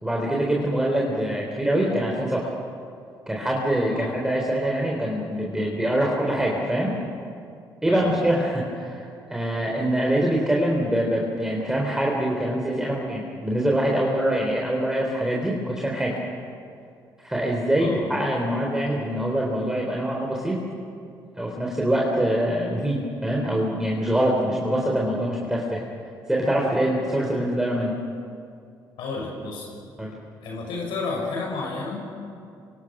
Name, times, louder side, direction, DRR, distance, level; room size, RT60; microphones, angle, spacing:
voice 1, 0.0-2.5 3.3-6.9 7.8-16.2 17.3-20.6 21.4-25.8 26.3-27.9 30.0-30.1, right 1 dB, 5° right, -2 dB, 3.7 m, -24 dB
voice 2, 7.9-8.2 17.8-18.0 29.0-29.7 30.4-32.2, left 3 dB, 90° left, -2 dB, 6.6 m, -31 dB
27.0 x 24.5 x 6.2 m, 2.4 s
cardioid pair, 110°, 8 cm